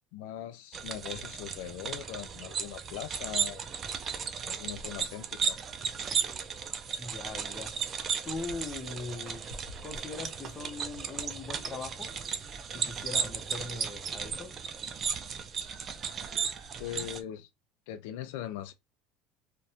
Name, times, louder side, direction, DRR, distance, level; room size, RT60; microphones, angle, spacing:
voice 1, 0.1-3.6 4.4-5.6 16.8-17.5 17.9-18.7, left 11 dB, 80° left, 0.3 m, -40 dB
sound 1, 0.7-17.2, right 6 dB, 35° right, 0.4 m, -35 dB
voice 2, 7.0-7.8 8.2-9.5 9.8-12.1 12.7-14.6, left 3 dB, 20° left, 0.8 m, -40 dB
Walk footsteps, 7.6-12.7, right 2 dB, 55° right, 0.8 m, -52 dB
2.7 x 2.2 x 2.7 m
supercardioid pair, 115°, 0 cm